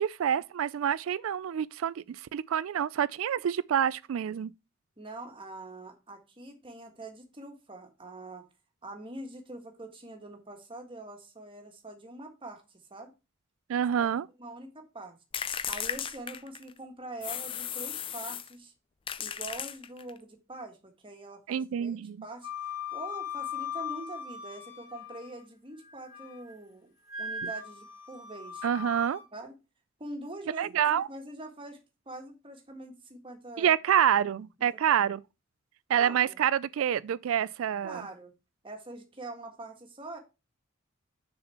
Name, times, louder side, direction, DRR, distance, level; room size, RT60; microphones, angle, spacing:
voice 1, 0.0-4.5 13.7-14.3 21.5-22.2 27.4-27.5 28.6-29.2 30.6-31.1 33.6-35.2 35.9-38.0, right 9 dB, 80° right, 0.3 m, -27 dB
voice 2, 5.0-8.4 8.8-13.1 14.0-14.1 14.4-15.2 15.6-18.7 19.2-20.8 21.0-26.9 27.2-28.6 29.3-29.5 30.0-33.7 34.6-34.7 35.9-36.4 37.8-38.3 38.6-40.2, right 2 dB, 25° right, 1.5 m, -44 dB
sound 1, 15.3-16.8 17.2-18.5 19.1-20.2, left 8 dB, 25° left, 0.4 m, -35 dB
Wind instrument woodwind instrument, 22.4-25.4 25.8-26.5 27.1-29.3, left 5 dB, 70° left, 2.8 m, -39 dB
6.6 x 4.2 x 5.6 m
head